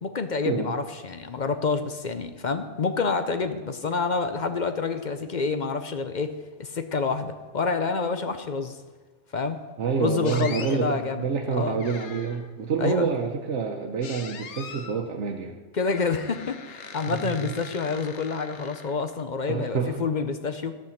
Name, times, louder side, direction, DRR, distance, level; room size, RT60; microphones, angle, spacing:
voice 1, 0.0-8.8 9.3-9.6 10.0-11.8 12.8-13.1 15.7-20.7, left 4 dB, 45° left, 8 dB, 0.8 m, -28 dB
voice 2, 9.8-15.6 17.1-17.5 19.5-20.0, right 6 dB, 85° right, 2 dB, 1.2 m, -28 dB
sound 1, 10.2-10.8 11.8-12.5 14.0-15.0 15.8-19.2, left 6 dB, 80° left, 1.2 m, -41 dB
13.5 x 5.9 x 7.1 m, 1.3 s
omnidirectional pair, 1.2 m